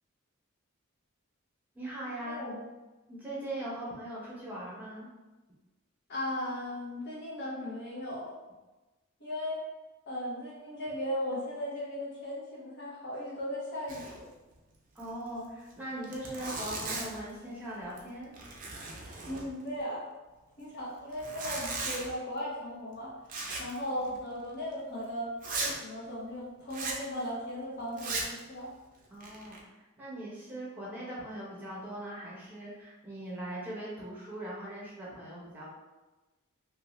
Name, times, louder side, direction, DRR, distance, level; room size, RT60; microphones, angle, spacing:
voice 1, 1.7-2.5 3.1-5.1 14.9-18.3 24.1-24.2 29.1-29.6 30.0-35.8, right 1 dB, 10° right, -7 dB, 0.8 m, -40 dB
voice 2, 2.2-2.6 6.1-8.3 9.2-9.6 10.1-14.3 19.2-20.0 20.6-23.1 23.6-25.3 25.6-28.7, left 1 dB, 50° left, -5 dB, 0.9 m, -37 dB
Zipper (clothing), 13.9-14.3 14.5-14.6 15.0-15.1 15.7-15.8 16.0-17.3 17.8-18.1 18.3-19.8 21.1-22.1 23.3-23.8 24.1-24.2 24.7-24.8 25.4-25.8 26.7-27.0 27.9-28.4 29.0-29.6, right 3 dB, 40° right, 0.5 m, -37 dB
2.7 x 2.6 x 3.0 m, 1.1 s
head